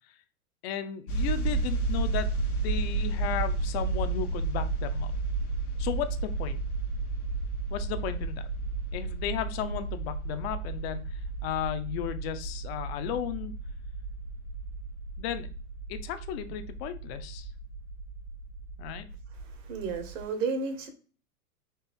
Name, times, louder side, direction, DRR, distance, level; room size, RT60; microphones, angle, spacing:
voice 1, 0.6-5.1 5.8-6.6 7.7-8.4 8.9-11.0 11.4-13.5 15.2-15.5 15.9-17.5 18.8-19.1, left 10 dB, 45° left, 10 dB, 0.7 m, -34 dB
sound 1, 1.1-20.2, right 3 dB, 85° left, 1.1 m, -33 dB
voice 2, 19.3-20.9, right 4 dB, 60° right, 7 dB, 1.3 m, -33 dB
4.5 x 2.9 x 3.4 m, 0.39 s
hypercardioid pair, 115°, 43 cm